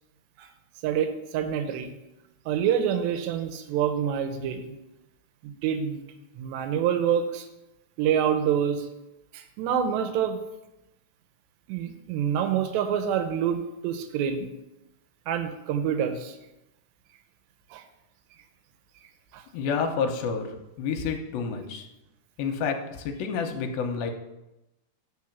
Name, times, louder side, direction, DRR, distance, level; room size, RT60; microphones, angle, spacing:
voice 1, 0.8-1.9 2.5-4.7 5.4-6.0 6.4-7.5 8.0-8.9 9.3-10.4 11.7-14.5 15.3-16.4 17.7-17.8 19.3-19.4, right 8 dB, 90° right, 7 dB, 3.0 m, -27 dB
voice 2, 19.5-20.5 20.8-21.9 22.4-24.1, left 5 dB, 75° left, 4 dB, 2.4 m, -29 dB
9.7 x 4.2 x 7.1 m, 0.95 s
omnidirectional pair, 4.9 m